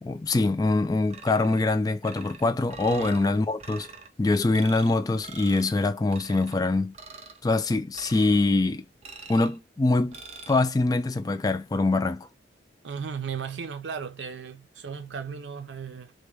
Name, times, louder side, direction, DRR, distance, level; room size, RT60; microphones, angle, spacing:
voice 1, 0.0-3.9 4.2-6.9 7.4-8.9 9.3-10.2 10.5-12.3, left 2 dB, 20° left, 0.3 m, -24 dB
sound 1, 1.1-1.7 2.0-3.2 3.6-4.1 4.5-4.9 5.2-5.7 6.1-6.6 6.9-7.4 7.9-8.5 9.0-9.6 10.1-10.6, right 4 dB, 35° right, 0.6 m, -44 dB
voice 2, 12.8-16.1, right 6 dB, 90° right, 0.6 m, -36 dB
3.4 x 2.2 x 3.3 m
head